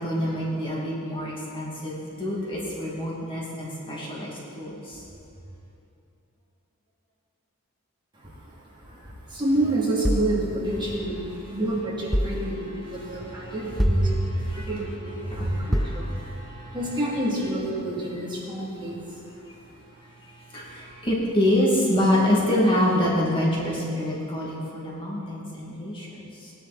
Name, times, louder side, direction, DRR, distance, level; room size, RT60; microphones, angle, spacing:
voice 1, 0.0-5.0 12.8-13.6 13.9-14.8 15.2-16.8 20.3-26.5, equal, 25° left, -5 dB, 2.5 m, -26 dB
voice 2, 8.1-16.1 16.5-19.5, right 1 dB, 20° right, -7 dB, 3.0 m, -29 dB
sound 1, 10.0-11.4 12.1-13.0 13.8-14.7 15.7-16.5, equal, ahead, 0.3 m, -28 dB
19.5 x 10.5 x 4.3 m, 2.7 s
head